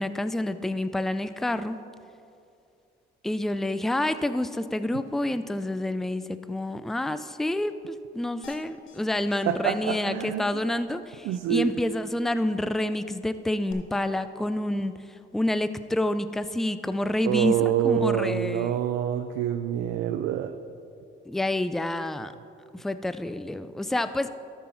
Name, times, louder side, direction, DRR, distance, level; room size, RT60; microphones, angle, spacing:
voice 1, 0.0-1.8 3.2-18.8 21.3-22.3 22.7-24.3, left 1 dB, ahead, 12 dB, 0.3 m, -28 dB
sound 1, 8.4-9.0 9.3-9.4 9.7-9.9 10.2-10.3 13.7-13.8, left 7 dB, 90° left, 0.8 m, -47 dB
voice 2, 9.5-10.4 11.2-11.7 17.2-20.5, right 10 dB, 90° right, 8 dB, 0.4 m, -26 dB
13.0 x 5.6 x 4.4 m, 2.5 s
cardioid pair, 90°, 20 cm